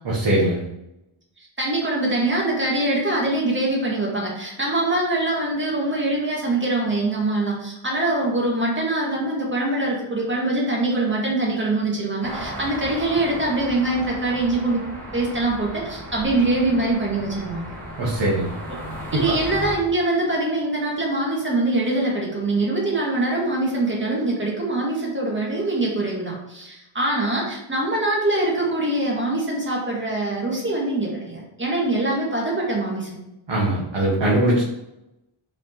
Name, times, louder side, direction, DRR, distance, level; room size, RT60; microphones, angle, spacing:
voice 1, 0.0-0.6 18.0-18.5 19.3-19.4 33.5-34.6, right 1 dB, 55° right, -5 dB, 1.8 m, -21 dB
voice 2, 1.6-14.8 15.1-17.7 19.1-33.2, right 2 dB, 25° right, -3 dB, 2.1 m, -23 dB
sound 1, 12.2-19.7, right 1 dB, 5° left, 2.4 m, -35 dB
5.6 x 5.1 x 4.6 m, 0.90 s
wide cardioid pair, 150°, 50 cm